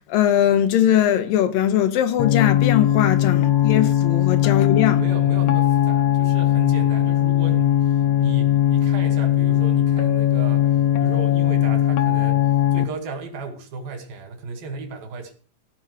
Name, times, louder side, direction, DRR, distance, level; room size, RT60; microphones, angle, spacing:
voice 1, 0.1-5.0, left 11 dB, 80° left, 2.8 m, -20 dB
sound 1, 2.2-12.8, left 12 dB, 65° left, 1.7 m, -19 dB
voice 2, 3.4-3.7 4.9-15.3, right 3 dB, 80° right, 4.0 m, -34 dB
16.0 x 5.5 x 8.1 m
omnidirectional pair, 4.1 m